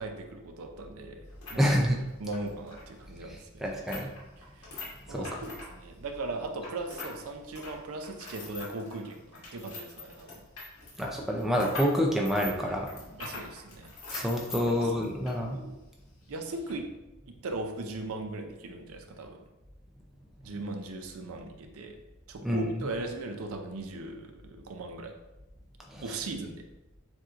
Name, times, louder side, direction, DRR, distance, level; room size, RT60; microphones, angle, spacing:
voice 1, 0.0-1.8 2.2-3.7 4.5-4.8 5.1-10.4 13.2-13.9 14.2-14.3 14.6-15.1 15.5-15.8 16.3-16.9 17.3-19.4 20.4-22.0 22.3-25.1 26.0-26.6, right 2 dB, 70° right, 5 dB, 0.5 m, -38 dB
sound 1, 1.2-7.2 7.4-15.4 15.7-15.8 16.5-16.7, left 3 dB, 80° left, 1.4 m, -43 dB
voice 2, 1.5-2.0 3.2-4.1 5.1-5.3 11.0-13.2 14.1-15.6 20.5-20.6 22.4-22.8 25.9-26.0, equal, ahead, -1 dB, 0.4 m, -28 dB
7.1 x 2.6 x 2.5 m, 1.0 s
head